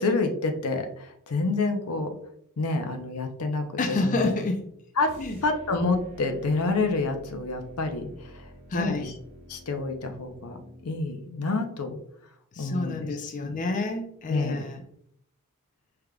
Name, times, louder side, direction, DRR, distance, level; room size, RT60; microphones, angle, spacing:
voice 1, 0.0-2.2 2.6-4.3 5.0-9.1 9.5-12.0 12.6-13.1 13.4-13.5 14.3-14.6, left 3 dB, 75° left, 6 dB, 0.6 m, -28 dB
voice 2, 3.8-4.6 5.2-5.4 8.7-9.1 12.5-14.8, left 2 dB, 35° left, 4 dB, 0.4 m, -28 dB
sound 1, 5.0-11.1, left 1 dB, 60° right, 1.0 m, -49 dB
4.9 x 3.4 x 2.3 m, 0.72 s
head